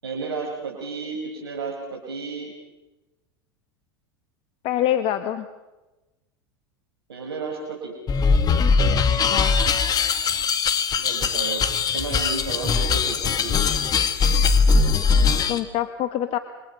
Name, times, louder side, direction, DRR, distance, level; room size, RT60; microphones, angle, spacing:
voice 1, 0.0-2.5 7.1-7.9 11.0-11.6 11.9-13.7, right 4 dB, 85° right, -1 dB, 5.6 m, -32 dB
voice 2, 4.6-5.5 9.3-9.6 15.5-16.4, left 12 dB, 50° left, 9 dB, 1.6 m, -25 dB
sound 1, 8.1-15.6, left 5 dB, 30° left, 2.0 m, -20 dB
28.5 x 25.0 x 5.6 m, 1.1 s
hypercardioid pair, 95°, 13 cm